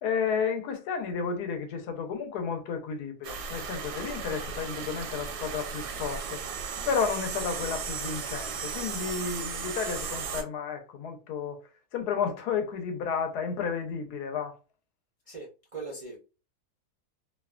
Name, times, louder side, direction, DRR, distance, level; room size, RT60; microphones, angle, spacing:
voice 1, 0.0-6.4 6.8-11.6 11.9-14.6, left 6 dB, 80° left, 1.2 m, -32 dB
sound 1, 3.2-10.4, right 6 dB, 85° right, 1.1 m, -36 dB
voice 2, 15.3-16.2, right 3 dB, 50° right, 0.4 m, -40 dB
2.8 x 2.1 x 2.3 m
omnidirectional pair, 1.7 m